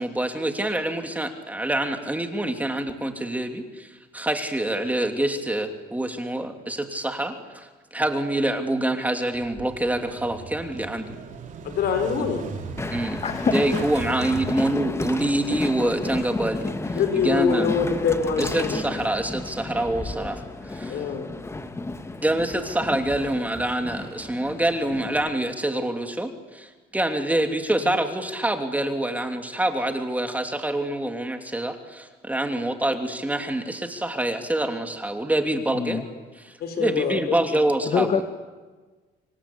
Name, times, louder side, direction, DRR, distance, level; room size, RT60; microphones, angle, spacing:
voice 1, 0.0-11.1 12.9-13.2 13.5-17.7 18.4-21.0 22.2-36.0 36.4-38.2, right 1 dB, 10° right, 5 dB, 3.0 m, -26 dB
Motorcycle / Engine starting, 9.3-15.2, right 5 dB, 50° right, 4.1 m, -39 dB
voice 2, 11.6-12.5 16.9-18.8 20.9-21.2 36.6-37.4, left 6 dB, 70° left, 8 dB, 4.7 m, -24 dB
Train, 12.8-25.3, left 2 dB, 15° left, 1.8 m, -32 dB
voice 3, 12.9-13.6 35.8-36.0 37.9-38.2, left 6 dB, 40° left, 8 dB, 2.0 m, -25 dB
27.0 x 24.5 x 8.7 m, 1.3 s
cardioid pair, 110°, 17 cm